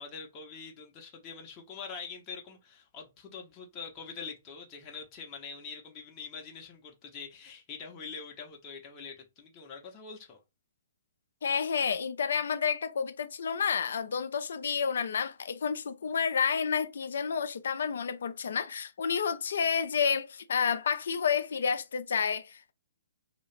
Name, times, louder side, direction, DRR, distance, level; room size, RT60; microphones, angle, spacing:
voice 1, 0.0-10.4, left 5 dB, 25° left, 0.7 m, -44 dB
voice 2, 11.4-22.7, left 6 dB, 60° left, 0.4 m, -30 dB
2.8 x 2.3 x 3.2 m
figure-of-eight pair, 125°, 0 cm